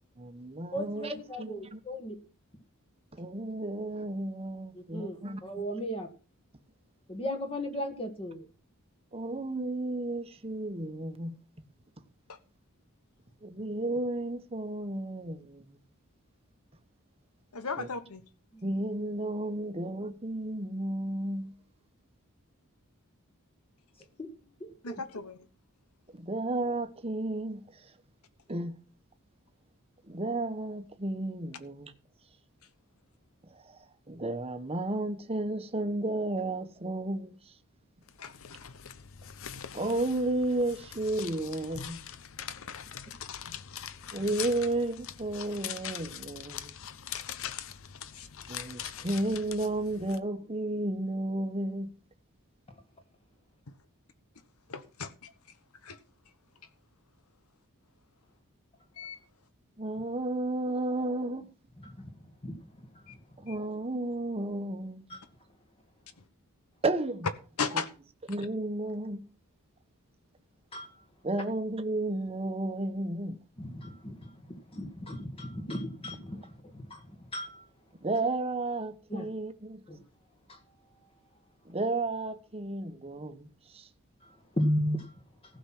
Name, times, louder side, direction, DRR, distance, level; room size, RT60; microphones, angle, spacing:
voice 1, 0.2-1.8 3.1-5.4 9.1-11.4 13.4-15.7 17.8-17.9 18.6-21.6 26.1-27.9 28.5-28.8 30.0-31.9 33.5-37.5 39.7-42.0 44.1-46.7 48.5-52.0 59.8-61.5 63.4-65.0 66.8-67.3 67.7-67.8 68.3-69.3 71.2-73.4 78.0-79.8 81.6-83.9, right 2 dB, 25° right, 1.1 m, -33 dB
voice 2, 0.7-2.2 4.7-6.1 7.1-8.5 18.5-18.8 24.2-25.0 61.8-61.9 62.4-62.5 62.9-63.2 65.1-65.2 70.7-71.0 73.6-77.7 79.1-79.3 79.9-80.0 80.5-80.6 84.2-85.2, equal, 25° left, 1.7 m, -36 dB
voice 3, 17.5-18.2 24.8-25.4 38.2-38.3 43.4-43.6 47.1-47.5 48.1-48.3 54.7-55.3 55.8-56.0 59.0-59.2 63.1-63.2 63.5-63.6 67.6-67.9, left 5 dB, 85° left, 1.3 m, -36 dB
sound 1, 38.1-50.2, left 9 dB, 65° left, 0.7 m, -42 dB
15.5 x 6.1 x 6.0 m
head